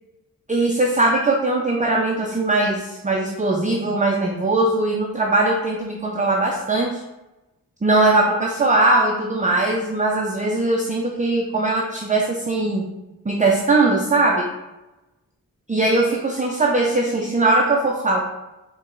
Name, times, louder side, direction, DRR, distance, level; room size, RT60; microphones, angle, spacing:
voice 1, 0.5-7.0 7.8-12.9 13.2-14.5 15.7-18.2, right 2 dB, 20° right, -1 dB, 0.5 m, -20 dB
4.3 x 3.0 x 3.6 m, 1.0 s
wide cardioid pair, 95°, 36 cm